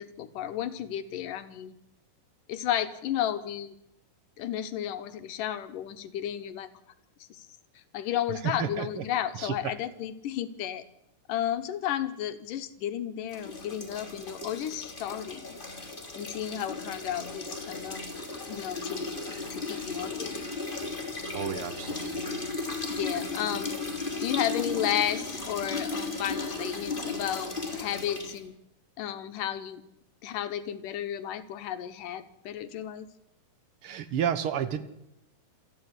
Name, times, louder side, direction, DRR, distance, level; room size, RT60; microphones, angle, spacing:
voice 1, 0.0-1.8 2.5-3.8 4.4-6.7 7.3-7.5 7.9-10.9 11.3-15.6 16.1-18.0 18.5-19.0 19.5-20.5 22.9-23.7 24.2-28.6 29.0-29.8 30.2-33.1, left 11 dB, 85° left, 12 dB, 2.8 m, -33 dB
voice 2, 8.6-9.0 9.3-9.7 21.3-22.2 33.8-34.8, right 8 dB, 55° right, 13 dB, 1.6 m, -31 dB
sound 1, 13.3-28.4, left 3 dB, 15° left, 2.9 m, -35 dB
27.5 x 9.7 x 9.8 m, 0.83 s
omnidirectional pair, 3.7 m